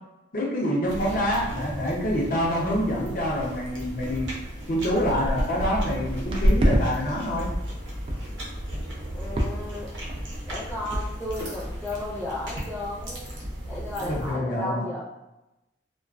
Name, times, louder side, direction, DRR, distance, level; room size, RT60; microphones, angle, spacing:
voice 1, 0.3-4.3 4.7-7.5 14.0-14.9, equal, 50° left, -3 dB, 0.6 m, -26 dB
sound 1, 0.9-14.3, equal, 85° right, 0.7 m, -36 dB
sound 2, 2.0-2.2 2.5-2.8 3.4-3.5 4.1-4.2 4.5-6.8 7.2-7.7 8.1-8.3 8.7-9.0 9.4-9.8 10.1-10.4 10.9-11.0 11.3-11.4 11.6-12.0 12.5-12.7 12.9-13.0 13.2-13.7 14.1-14.2, equal, 30° right, 0.3 m, -27 dB
voice 2, 9.1-9.9 10.5-13.3 13.7-15.0, left 1 dB, 10° left, -7 dB, 0.6 m, -34 dB
2.3 x 2.2 x 2.3 m, 0.94 s
head